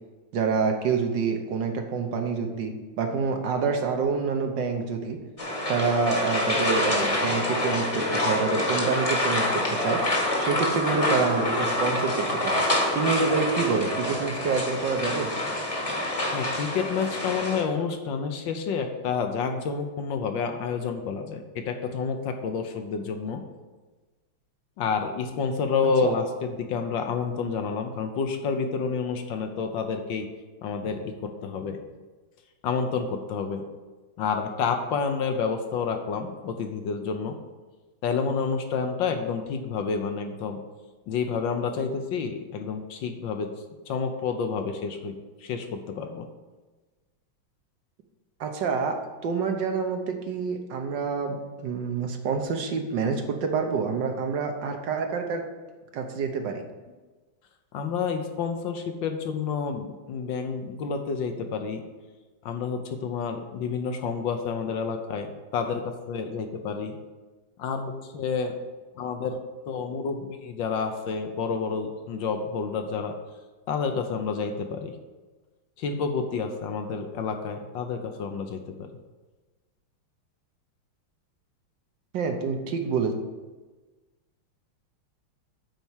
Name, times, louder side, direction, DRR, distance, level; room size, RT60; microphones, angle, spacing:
voice 1, 0.3-5.2 5.7-10.0 10.4-12.6 12.9-15.3 26.0-26.2 48.4-55.4 55.9-56.6 82.1-83.1, right 5 dB, 65° right, 4 dB, 1.4 m, -27 dB
sound 1, 5.4-17.6, left 1 dB, 20° left, 1.1 m, -26 dB
voice 2, 16.3-23.4 24.8-30.3 30.6-31.8 32.6-33.6 34.2-37.4 38.0-40.6 41.1-43.5 43.9-45.1 45.4-46.3 57.7-61.8 62.4-67.0 67.6-68.5 69.0-69.4 69.7-73.1 73.7-74.9 75.8-78.9, left 5 dB, 70° left, 6 dB, 1.4 m, -29 dB
9.2 x 4.2 x 7.2 m, 1.3 s
omnidirectional pair, 2.3 m